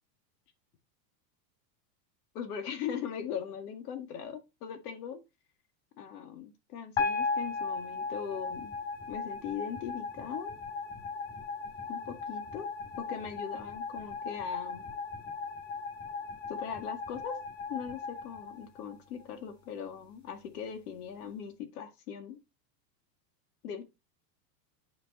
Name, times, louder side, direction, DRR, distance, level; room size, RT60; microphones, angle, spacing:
voice 1, 2.3-5.2 6.0-8.7 9.1-10.6 11.9-12.7 13.0-14.8 16.5-17.4 17.7-22.4 23.6-23.8, left 8 dB, 65° left, 2.0 m, -40 dB
sound 1, 7.0-19.2, left 4 dB, 20° left, 5.3 m, -37 dB
8.9 x 4.8 x 4.1 m
supercardioid pair, 165°, 50 cm